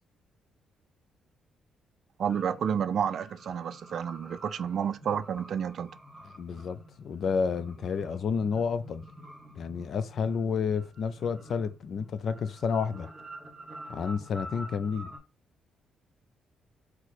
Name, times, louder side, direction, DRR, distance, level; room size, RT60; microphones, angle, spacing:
sound 1, 2.2-15.2, right 1 dB, 10° right, 1.4 m, -48 dB
voice 1, 2.2-5.9, right 8 dB, 55° right, 0.3 m, -30 dB
voice 2, 6.4-9.0 9.6-13.1 13.9-15.1, left 6 dB, 50° left, 0.4 m, -30 dB
4.6 x 2.1 x 4.1 m
cardioid pair, 120°, 0 cm